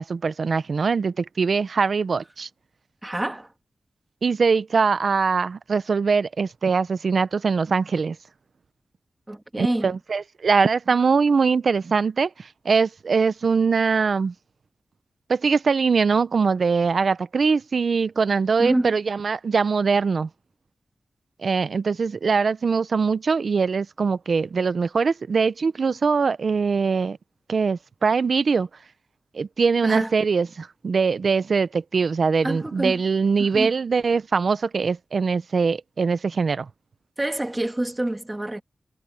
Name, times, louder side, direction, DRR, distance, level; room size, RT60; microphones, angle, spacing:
voice 1, 0.0-2.5 4.2-8.2 9.6-14.3 15.3-20.3 21.4-27.2 27.5-28.7 29.3-36.7, right 5 dB, 50° right, 0.6 m, -22 dB
voice 2, 3.0-3.5 9.3-9.9 18.6-18.9 29.8-30.1 32.4-33.0 33.4-33.7 37.2-38.6, right 1 dB, 15° right, 1.6 m, -27 dB
wide cardioid pair, 180°, 0 cm